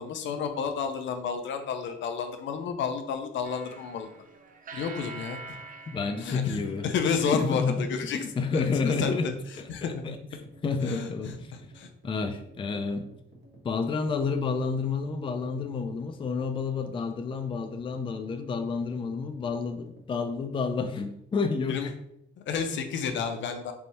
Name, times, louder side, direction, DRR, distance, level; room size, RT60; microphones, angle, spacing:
voice 1, 0.0-4.1 4.7-5.6 6.2-8.2 8.5-10.2 10.8-11.9 21.7-21.9 22.4-23.7, left 6 dB, 70° left, 6 dB, 0.6 m, -31 dB
sound 1, 3.4-7.7, right 4 dB, 45° right, 0.6 m, -45 dB
voice 2, 5.9-6.9 7.2-9.3 9.6-10.2 10.6-11.5 12.0-13.1 13.6-21.9, left 4 dB, 25° left, 7 dB, 0.4 m, -30 dB
sound 2, 6.2-20.5, right 1 dB, 60° right, 1.4 m, -53 dB
3.4 x 2.6 x 4.2 m, 0.76 s
cardioid pair, 90°, 20 cm